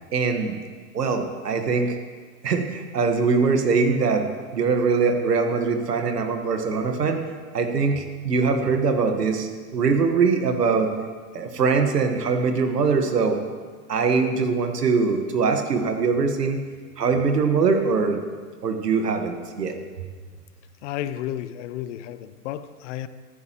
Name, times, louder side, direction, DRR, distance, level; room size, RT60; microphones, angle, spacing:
voice 1, 0.1-0.6 0.9-2.0 2.4-4.3 4.5-7.2 7.5-10.9 11.3-13.4 13.9-16.6 17.0-18.2 18.6-19.8, right 4 dB, 85° right, 6 dB, 1.6 m, -22 dB
voice 2, 20.8-23.1, left 12 dB, 50° left, 13 dB, 0.8 m, -32 dB
15.0 x 13.5 x 3.0 m, 1.5 s
hypercardioid pair, 110°, 47 cm